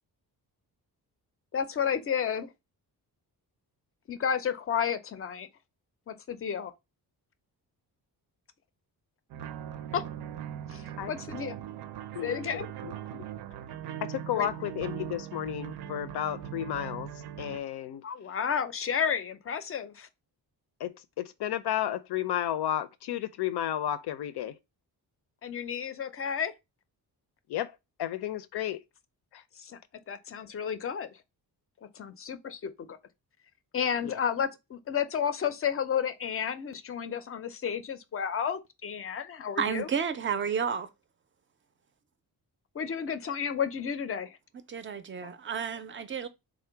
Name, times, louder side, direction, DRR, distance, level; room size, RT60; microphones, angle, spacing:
voice 1, 1.5-2.5 4.1-5.5 6.1-6.7 9.9-10.0 10.7-11.6 12.2-12.7 14.4-14.5 18.0-20.1 25.4-26.5 29.6-29.8 30.1-31.1 31.9-33.0 33.7-39.9 42.7-44.4 45.2-45.3, left 7 dB, 35° left, 0.4 m, -32 dB
sound 1, 9.3-17.6, right 10 dB, 85° right, 0.5 m, -40 dB
voice 2, 12.1-13.3 14.0-17.1 17.4-18.0 20.8-24.6 27.5-27.7 28.0-28.8 29.3-29.4 34.0-34.2, left 11 dB, 90° left, 0.6 m, -33 dB
voice 3, 39.6-40.9 44.7-46.3, right 7 dB, 35° right, 0.4 m, -31 dB
3.7 x 2.1 x 4.4 m
wide cardioid pair, 160°, 38 cm